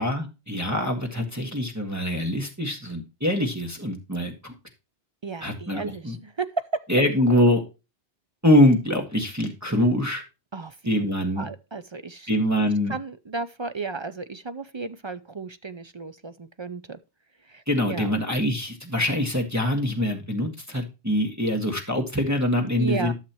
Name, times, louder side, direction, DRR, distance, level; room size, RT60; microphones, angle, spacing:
voice 1, 0.0-4.5 5.4-6.2 6.9-7.6 8.4-10.2 10.9-11.5 12.3-12.9 17.7-23.1, left 1 dB, 15° right, 1.6 m, -24 dB
voice 2, 5.2-6.6 10.5-11.0 11.4-12.3 12.9-17.0 17.5-18.1 22.8-23.1, right 4 dB, 40° right, 0.4 m, -34 dB
12.5 x 6.6 x 2.9 m
omnidirectional pair, 1.2 m